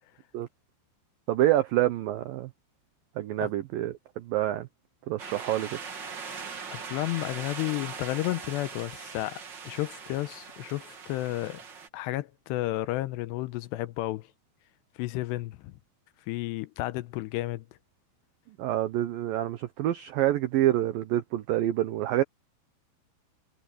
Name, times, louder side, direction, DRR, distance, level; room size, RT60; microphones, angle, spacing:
voice 1, 1.3-2.5 3.2-4.7 5.1-5.7 18.6-22.2, right 14 dB, 85° right, 2.0 m, -27 dB
sound 1, 5.2-11.9, right 5 dB, 65° right, 1.1 m, -41 dB
voice 2, 6.7-11.6 11.9-14.3 15.0-15.8 16.3-17.7, left 17 dB, 80° left, 2.7 m, -32 dB
omnidirectional pair, 5.3 m